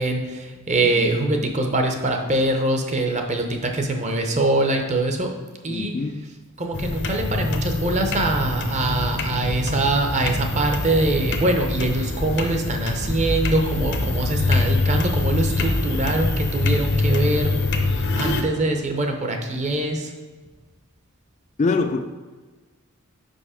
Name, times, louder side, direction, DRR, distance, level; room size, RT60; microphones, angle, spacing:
voice 1, 0.0-5.3 5.6-5.9 6.6-17.5 18.2-20.1, right 2 dB, 35° right, 4 dB, 0.8 m, -23 dB
voice 2, 5.7-6.2 21.6-22.0, left 3 dB, 35° left, 7 dB, 0.3 m, -24 dB
sound 1, 6.7-18.4, left 2 dB, 55° left, 0.7 m, -24 dB
5.2 x 5.2 x 4.9 m, 1.3 s
head